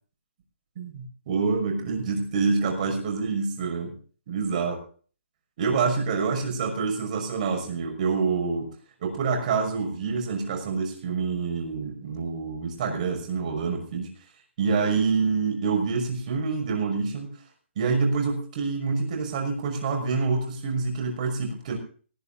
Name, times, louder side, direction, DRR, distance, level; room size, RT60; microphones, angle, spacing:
voice 1, 0.8-4.0 4.3-4.8 5.6-8.7 9.0-14.1 14.6-17.3 17.8-21.8, right 4 dB, 40° right, 4 dB, 5.7 m, -27 dB
19.0 x 7.0 x 6.8 m, 0.43 s
hypercardioid pair, 155°, 6 cm